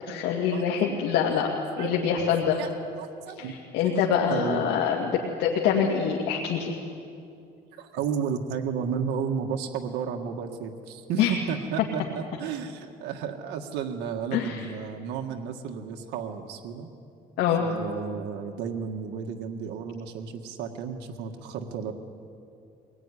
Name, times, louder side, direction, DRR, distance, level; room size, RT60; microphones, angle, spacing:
voice 1, 0.1-1.5 1.8-2.6 3.4-5.1 5.4-6.8 11.2-11.4 14.3-14.6 17.4-17.7, left 7 dB, 90° left, -1 dB, 2.4 m, -25 dB
voice 2, 1.8-2.2 2.6-2.7 3.0-3.5 4.3-4.6 7.8-16.9 17.6-21.9, right 7 dB, 90° right, 3 dB, 1.7 m, -33 dB
24.0 x 20.0 x 9.9 m, 2.5 s
cardioid pair, 110°, 17 cm